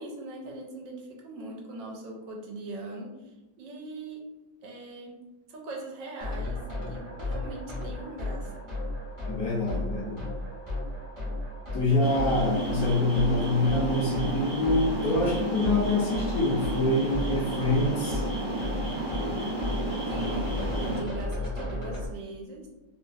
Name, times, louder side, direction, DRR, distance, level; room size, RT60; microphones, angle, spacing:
voice 1, 0.0-4.2 4.6-5.2 5.5-8.7 20.1-22.7, right 2 dB, 80° right, -1 dB, 1.3 m, -40 dB
sound 1, 6.2-22.1, left 1 dB, 30° right, 0.7 m, -34 dB
voice 2, 9.3-10.3 11.7-18.2, left 2 dB, 65° left, -4 dB, 1.0 m, -26 dB
sound 2, 12.0-21.0, right 1 dB, 50° right, 1.3 m, -32 dB
3.2 x 2.7 x 2.4 m, 1.1 s
omnidirectional pair, 2.0 m